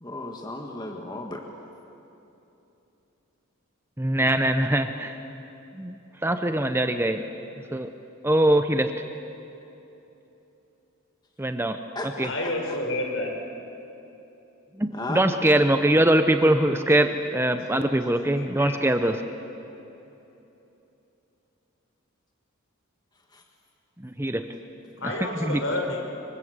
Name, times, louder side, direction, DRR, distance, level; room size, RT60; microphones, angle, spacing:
voice 1, 0.0-1.4 12.0-12.8 14.9-15.2 23.3-23.4, left 2 dB, 20° left, 2 dB, 1.6 m, -35 dB
voice 2, 4.0-5.2 5.7-6.0 6.2-7.2 7.7-7.9 8.2-8.9 11.4-11.8 12.2-12.3 14.8-19.2 24.0-24.4 25.5-25.6, right 1 dB, 10° right, 8 dB, 0.7 m, -22 dB
voice 3, 12.2-13.4 18.3-19.2 25.0-26.0, left 2 dB, 65° left, 2 dB, 4.9 m, -30 dB
26.5 x 23.0 x 8.1 m, 3.0 s
head